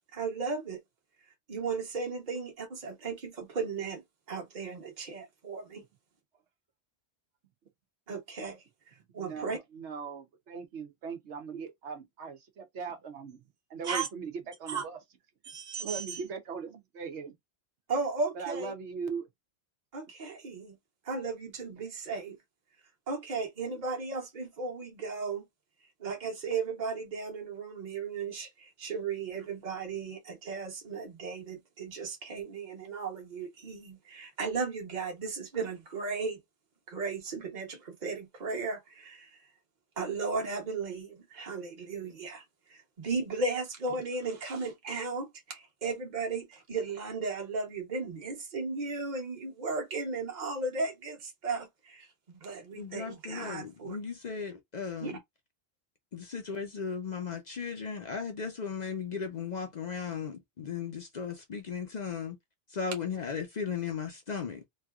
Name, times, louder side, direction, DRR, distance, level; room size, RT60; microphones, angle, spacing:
voice 1, 0.1-0.8 1.5-4.0 4.3-5.8 8.1-8.6 9.1-9.6 13.9-14.1 14.7-14.8 15.5-16.2 17.9-18.7 19.9-20.8 21.0-22.4 23.1-25.4 26.0-36.4 36.9-39.3 40.0-42.4 42.7-54.0 55.0-55.1, right 4 dB, 45° right, 1.1 m, -35 dB
voice 2, 9.1-13.4 13.7-15.0 15.6-17.4 18.3-19.3, right 5 dB, 85° right, 1.1 m, -39 dB
voice 3, 52.7-55.2 56.1-62.4 62.7-64.6, left 6 dB, 50° left, 0.6 m, -36 dB
3.2 x 2.7 x 2.3 m
omnidirectional pair, 1.1 m